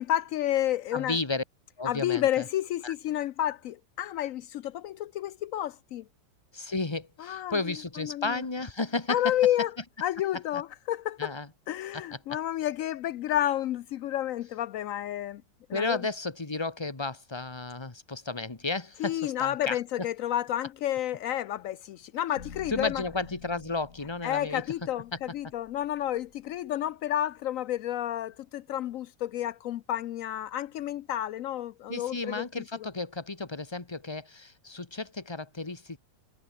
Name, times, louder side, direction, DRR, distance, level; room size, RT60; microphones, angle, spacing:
voice 1, 0.0-1.2 1.9-6.0 7.2-7.6 8.0-8.4 9.1-9.7 10.0-11.3 11.7-15.4 15.7-16.0 19.0-23.0 24.2-32.4, left 12 dB, 85° left, 0.7 m, -30 dB
voice 2, 0.9-1.4 1.8-2.4 2.8-2.9 6.5-9.3 10.5-10.6 11.2-11.5 11.9-12.2 15.7-20.1 22.7-24.6 31.9-36.0, left 3 dB, 15° left, 1.5 m, -33 dB
sound 1, 22.4-26.6, left 5 dB, 40° left, 2.2 m, -50 dB
omnidirectional pair, 2.0 m